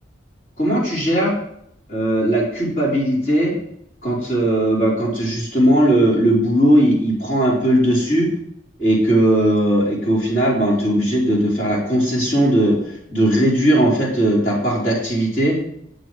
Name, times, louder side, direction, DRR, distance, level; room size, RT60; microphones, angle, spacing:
voice 1, 0.6-1.3 1.9-3.5 4.0-8.3 8.8-12.8 13.1-15.6, right 1 dB, 45° left, -6 dB, 4.2 m, -18 dB
9.7 x 8.1 x 5.0 m, 0.72 s
head